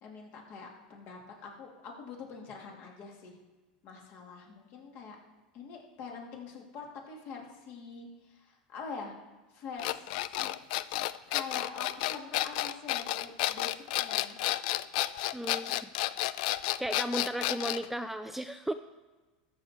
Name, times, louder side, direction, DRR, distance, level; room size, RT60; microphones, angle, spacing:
voice 1, 0.0-3.4 3.8-5.2 5.5-9.1 9.5-10.6 11.3-14.4, left 4 dB, 50° left, 0 dB, 2.9 m, -45 dB
sound 1, 9.8-17.9, left 16 dB, 65° left, 0.4 m, -31 dB
voice 2, 15.3-15.9 16.8-18.7, right 1 dB, 5° right, 9 dB, 0.4 m, -35 dB
13.5 x 6.4 x 4.6 m, 1.2 s
hypercardioid pair, 105°, 5 cm